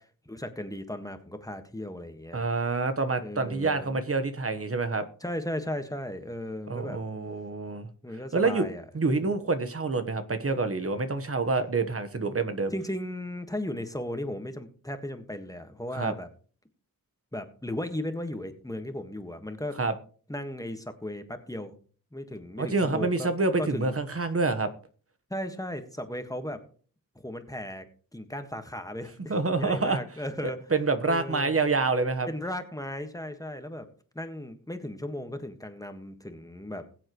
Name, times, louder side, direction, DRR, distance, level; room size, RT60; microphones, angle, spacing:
voice 1, 0.3-2.4 3.2-4.0 5.2-7.0 8.0-8.8 9.2-9.3 12.7-16.3 17.3-19.8 20.3-21.7 22.1-23.3 23.6-23.9 25.3-26.6 27.1-27.9 28.1-30.6 31.1-31.6 32.3-33.9 34.1-36.9, left 1 dB, 10° left, 7 dB, 1.6 m, -36 dB
voice 2, 2.3-5.1 6.7-7.9 8.3-8.7 8.9-12.7 15.9-16.1 19.8-19.9 22.6-24.7 29.3-30.0 30.7-32.3, right 3 dB, 40° right, 9 dB, 1.3 m, -27 dB
21.5 x 7.8 x 3.1 m, 0.42 s
wide cardioid pair, 75°, 35 cm